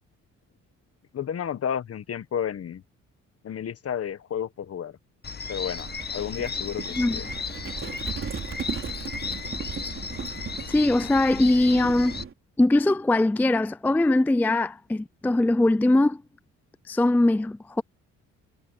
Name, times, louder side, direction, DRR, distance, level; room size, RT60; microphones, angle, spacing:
voice 1, 1.1-2.8 3.4-5.0 5.5-7.4 7.8-7.9, left 8 dB, 50° left, 1.5 m, -32 dB
sound 1, 5.2-12.2, left 5 dB, 35° left, 1.4 m, -35 dB
Livestock farm animals working animals, 5.7-12.3, right 6 dB, 45° right, 4.0 m, -37 dB
voice 2, 10.7-12.2 12.6-16.2 16.9-17.8, left 2 dB, 5° left, 0.4 m, -21 dB
cardioid pair, 90°, 30 cm